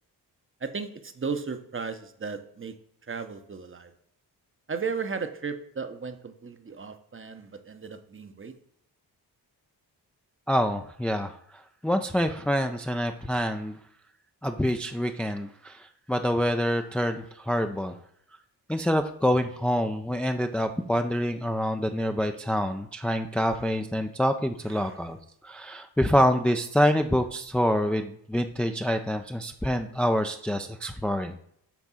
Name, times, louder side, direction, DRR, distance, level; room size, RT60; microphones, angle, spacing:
voice 1, 0.6-2.8 3.1-3.9 4.7-8.5 24.7-25.0, right 5 dB, 30° right, 9 dB, 0.8 m, -35 dB
voice 2, 10.5-13.8 14.4-18.0 18.7-25.2 25.4-31.4, equal, 5° left, 6 dB, 0.4 m, -26 dB
6.1 x 3.5 x 5.6 m, 0.70 s
cardioid pair, 55°, 43 cm